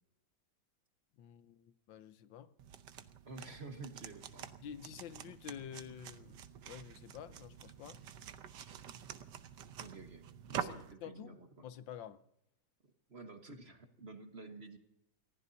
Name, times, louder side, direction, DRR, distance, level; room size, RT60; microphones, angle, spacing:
voice 1, 1.2-2.5 4.6-6.4 6.6-8.0 10.5-11.4 11.6-12.2, left 9 dB, 85° left, 1.6 m, -49 dB
sound 1, 2.6-10.9, right 9 dB, 70° right, 1.5 m, -47 dB
voice 2, 3.2-4.5 9.8-11.7 13.1-14.8, right 3 dB, 35° right, 1.5 m, -50 dB
29.5 x 15.5 x 2.7 m
omnidirectional pair, 2.0 m